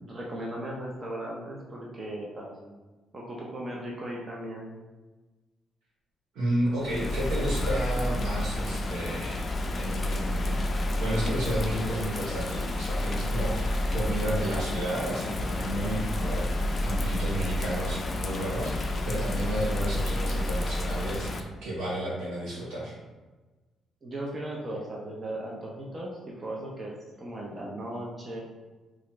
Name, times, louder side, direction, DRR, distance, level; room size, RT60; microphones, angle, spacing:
voice 1, 0.0-2.5 3.1-4.7 24.0-28.4, right 1 dB, 30° right, -3 dB, 0.5 m, -37 dB
voice 2, 6.3-9.4 9.7-10.6 11.0-22.9, right 1 dB, 80° right, -6 dB, 1.3 m, -32 dB
Bird vocalization bird call bird song / Rain, 6.8-21.4, left 1 dB, 40° left, 0.3 m, -30 dB
3.0 x 2.4 x 3.0 m, 1.2 s
cardioid pair, 90°, 0 cm